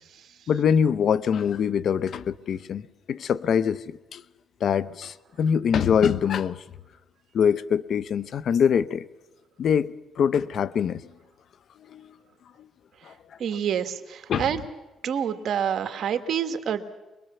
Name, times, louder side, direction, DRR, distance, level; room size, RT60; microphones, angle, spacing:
voice 1, 0.5-2.8 3.1-4.2 4.6-6.6 7.3-9.0 9.6-11.0 11.9-12.1 13.0-13.1 14.3-14.5, left 7 dB, 60° left, 0.7 m, -24 dB
voice 2, 13.4-14.6 15.0-16.8, right 8 dB, 65° right, 1.6 m, -27 dB
24.5 x 21.5 x 6.9 m
cardioid pair, 90°, 0 cm